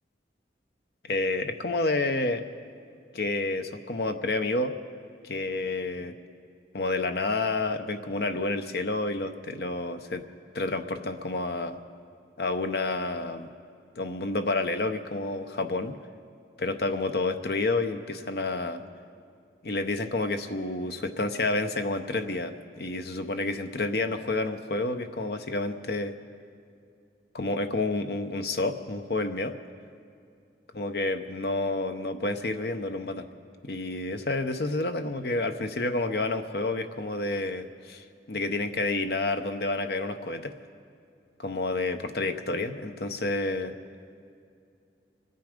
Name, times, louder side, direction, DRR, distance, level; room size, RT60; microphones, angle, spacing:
voice 1, 1.0-2.4 3.1-4.7 5.2-6.2 6.7-10.2 10.5-11.8 12.4-13.5 14.0-16.0 16.6-18.8 19.6-26.1 27.3-29.5 30.7-33.3 33.6-40.5 41.4-43.7, left 2 dB, 60° left, 8 dB, 0.8 m, -29 dB
24.5 x 9.5 x 5.1 m, 2.5 s
head